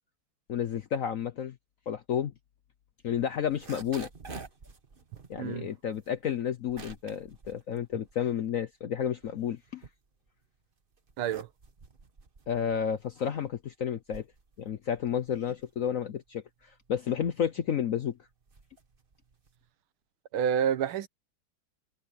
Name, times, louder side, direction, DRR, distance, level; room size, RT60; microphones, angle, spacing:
voice 1, 0.5-1.6 1.9-2.3 3.0-4.1 5.3-9.8 12.5-14.2 14.6-16.4 16.9-18.2, left 8 dB, 65° left, 0.8 m, -31 dB
sound 1, 3.3-8.7 9.0-10.5 10.9-19.7, right 4 dB, 30° right, 1.3 m, -50 dB
voice 2, 5.4-5.7 11.2-11.5 20.3-21.1, right 8 dB, 85° right, 1.9 m, -28 dB
omnidirectional pair, 2.3 m